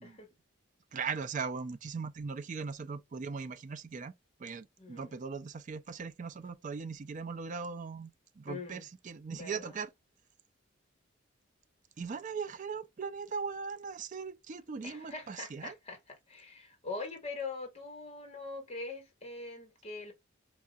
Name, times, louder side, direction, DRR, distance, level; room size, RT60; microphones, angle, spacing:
voice 1, 0.9-4.1 4.4-9.9 12.0-15.7, right 5 dB, 40° right, 0.4 m, -39 dB
voice 2, 4.8-5.1 8.5-8.8 9.3-9.8 14.8-16.0 16.3-20.1, left 3 dB, 30° left, 1.5 m, -42 dB
4.1 x 2.7 x 2.3 m
head